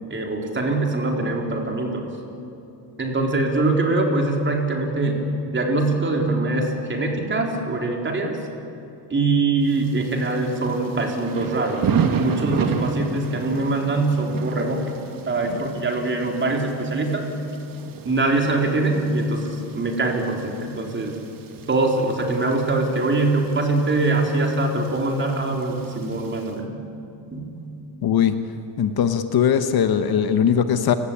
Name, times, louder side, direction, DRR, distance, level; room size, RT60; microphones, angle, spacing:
voice 1, 0.1-2.1 3.0-8.4 9.1-11.8 12.1-14.8 15.3-17.3 18.1-21.1 21.7-26.7 27.3-27.5, right 2 dB, 25° right, 2 dB, 3.8 m, -23 dB
Thunder / Rain, 9.7-26.5, right 6 dB, 45° right, 2.0 m, -32 dB
voice 2, 28.0-28.4 28.8-30.9, left 8 dB, 50° left, 9 dB, 1.2 m, -20 dB
29.5 x 17.5 x 8.7 m, 2.7 s
cardioid pair, 135°, 49 cm